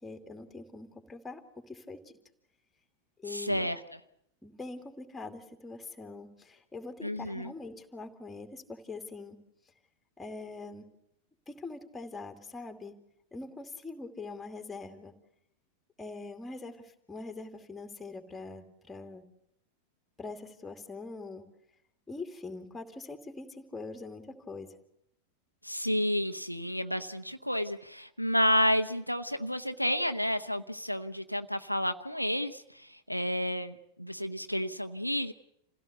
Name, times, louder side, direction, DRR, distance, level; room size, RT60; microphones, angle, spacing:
voice 1, 0.0-2.2 3.2-3.7 4.4-9.4 10.2-10.9 11.5-13.0 13.3-15.1 16.0-19.2 20.2-21.5 22.1-24.8, left 3 dB, 10° left, 6 dB, 2.6 m, -43 dB
voice 2, 3.3-3.8 7.0-7.5 25.6-35.3, equal, 90° left, 8 dB, 0.8 m, -30 dB
27.5 x 16.5 x 8.1 m, 0.77 s
figure-of-eight pair, 90°, 0 cm